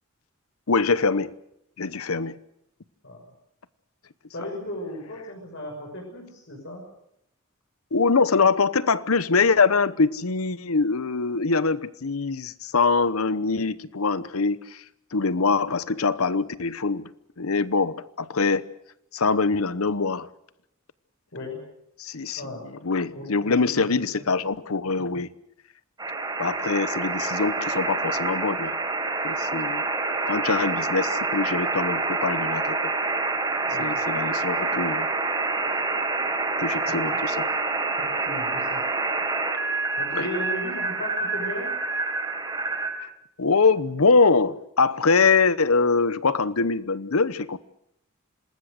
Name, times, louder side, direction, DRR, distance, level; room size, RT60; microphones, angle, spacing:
voice 1, 0.7-1.3 1.8-2.3 7.9-14.8 15.1-17.1 17.4-18.7 19.1-20.3 22.0-25.3 26.4-28.8 29.2-29.8 30.3-32.9 33.7-35.1 36.6-37.5 40.1-40.3 43.4-47.6, left 4 dB, 90° left, 0.9 m, -23 dB
voice 2, 4.3-6.8 21.3-21.6 22.4-22.7 23.1-23.9 24.2-24.3 33.7-33.8 34.1-34.2 36.9-37.2 38.0-38.8 40.0-41.7, left 1 dB, 60° left, 6.1 m, -36 dB
sound 1, 26.0-42.9, right 3 dB, 20° right, 5.0 m, -27 dB
27.0 x 20.0 x 6.5 m
head